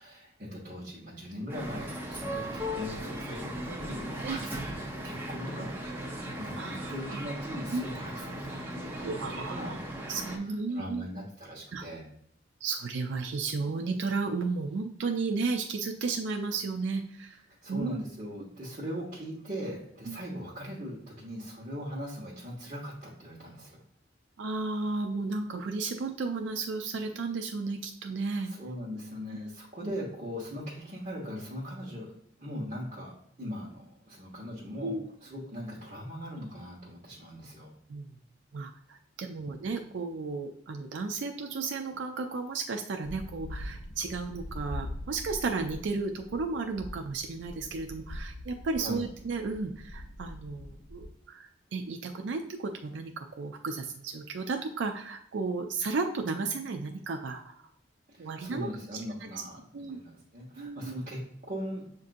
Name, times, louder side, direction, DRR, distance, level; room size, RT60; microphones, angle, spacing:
voice 1, 0.0-4.7 5.0-5.9 6.2-9.1 9.4-9.7 10.5-12.1 17.6-23.8 28.4-33.1 33.4-35.0 35.2-37.7 39.3-39.5 48.8-49.0 58.1-61.9, equal, 40° right, -8 dB, 1.2 m, -40 dB
sound 1, 1.5-10.4, equal, 10° right, 0.7 m, -37 dB
voice 2, 6.6-7.2 7.7-7.8 9.0-9.8 10.1-11.1 11.7-11.8 12.6-17.4 17.7-18.0 18.4-18.5 20.1-20.2 24.4-28.5 29.8-29.9 34.8-35.1 37.9-38.1 38.5-57.6 58.2-59.0 59.3-59.4 59.7-60.0 60.6-61.0, right 4 dB, 80° right, 4 dB, 0.4 m, -34 dB
sound 2, 43.0-51.1, left 1 dB, 70° left, 0.6 m, -43 dB
7.2 x 2.6 x 2.5 m, 0.70 s
head